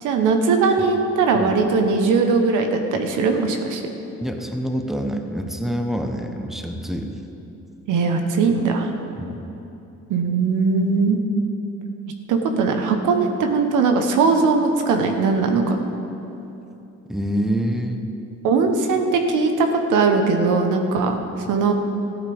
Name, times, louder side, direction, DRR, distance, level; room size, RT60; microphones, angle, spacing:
voice 1, 0.0-3.8 7.9-8.9 10.1-11.2 12.3-15.8 18.4-21.2 21.5-21.7, right 4 dB, 85° right, 5 dB, 1.2 m, -19 dB
voice 2, 4.2-7.1 9.1-9.4 17.1-18.1, equal, ahead, 4 dB, 1.0 m, -26 dB
14.5 x 12.5 x 3.5 m, 2.9 s
cardioid pair, 90°, 30 cm